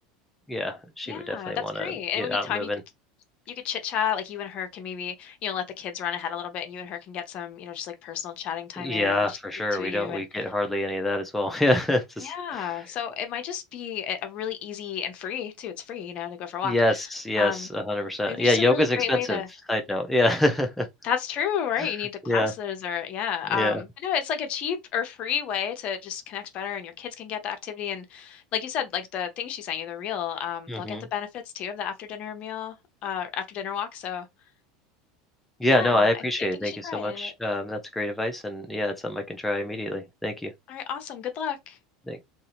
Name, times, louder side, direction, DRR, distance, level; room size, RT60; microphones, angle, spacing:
voice 1, 0.5-1.8 2.2-2.8 8.8-12.7 16.6-19.4 19.7-20.9 21.8-21.9 22.3-22.5 23.5-23.8 30.7-31.0 35.6-40.5 42.1-42.2, left 1 dB, 5° left, 0.5 m, -26 dB
voice 2, 1.1-2.7 3.6-9.4 9.7-10.4 12.2-17.1 17.4-17.7 18.3-19.5 21.0-32.8 33.0-34.3 35.6-37.3 40.7-41.8, left 8 dB, 45° left, 0.7 m, -32 dB
2.6 x 2.5 x 2.9 m
supercardioid pair, 110°, 3 cm